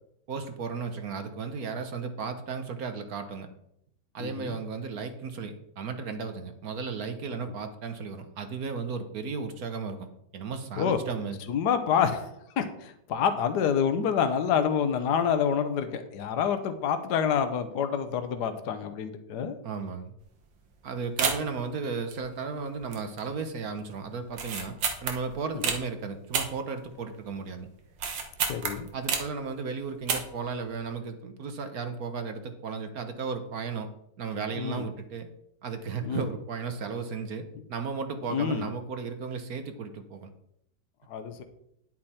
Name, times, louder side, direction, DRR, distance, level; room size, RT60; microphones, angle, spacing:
voice 1, 0.3-3.5 4.1-10.1 10.3-11.4 19.6-20.1 20.8-24.7 25.0-27.7 28.9-33.9 34.2-35.3 35.6-40.3, right 5 dB, 55° right, 7 dB, 1.3 m, -35 dB
voice 2, 4.2-4.6 10.8-11.0 11.5-12.3 12.6-19.6 28.5-28.9 34.6-34.8 36.0-36.3 38.3-38.7 41.1-41.4, left 7 dB, 65° left, 8 dB, 1.5 m, -27 dB
sound 1, 20.2-20.4 20.7-20.8 21.2-21.6 22.1-22.6 22.9-23.3 23.6-23.7 24.3-25.8 26.3-27.2 27.6-29.4 29.9-30.5 30.7-30.8, right 5 dB, 80° right, 2.0 m, -30 dB
10.0 x 8.8 x 4.3 m, 0.75 s
omnidirectional pair, 2.0 m